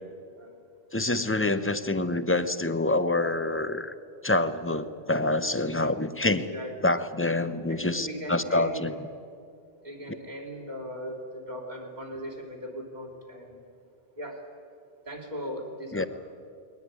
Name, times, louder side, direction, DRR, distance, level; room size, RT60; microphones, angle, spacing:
voice 1, 0.9-3.9 4.2-6.5 6.8-9.0 15.9-16.1, left 2 dB, 15° left, 12 dB, 0.8 m, -26 dB
voice 2, 7.7-8.9 9.8-13.6 14.2-14.4 15.1-16.1, equal, 45° right, 2 dB, 3.7 m, -38 dB
21.5 x 19.5 x 9.6 m, 2.4 s
omnidirectional pair, 1.0 m